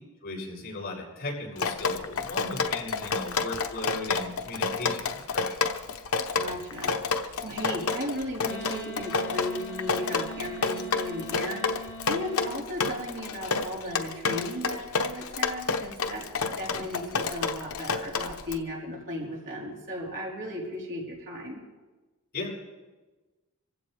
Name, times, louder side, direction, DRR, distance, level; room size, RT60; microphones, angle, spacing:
voice 1, 0.2-5.6 22.3-22.6, left 2 dB, 45° left, -5 dB, 7.2 m, -37 dB
Drip, 1.6-18.6, left 4 dB, 85° left, 1.0 m, -29 dB
voice 2, 6.3-21.6, left 1 dB, 60° right, -3 dB, 4.1 m, -36 dB
Wind instrument woodwind instrument, 8.4-12.6, equal, 10° left, 2.1 m, -41 dB
25.5 x 15.5 x 3.4 m, 1.2 s
head